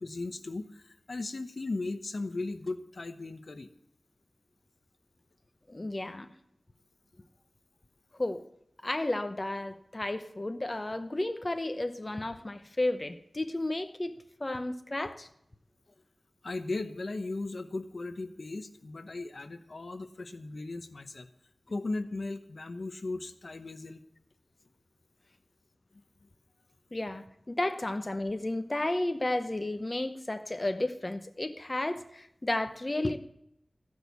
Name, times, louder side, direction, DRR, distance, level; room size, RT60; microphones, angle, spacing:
voice 1, 0.0-3.7 16.4-21.3 21.7-24.0 25.9-26.3, left 2 dB, 65° left, 10 dB, 0.8 m, -37 dB
voice 2, 5.7-6.3 8.1-8.4 8.8-15.3 26.9-33.2, left 1 dB, 35° left, 9 dB, 0.8 m, -33 dB
14.5 x 6.3 x 8.2 m, 0.77 s
wide cardioid pair, 60°, 0 cm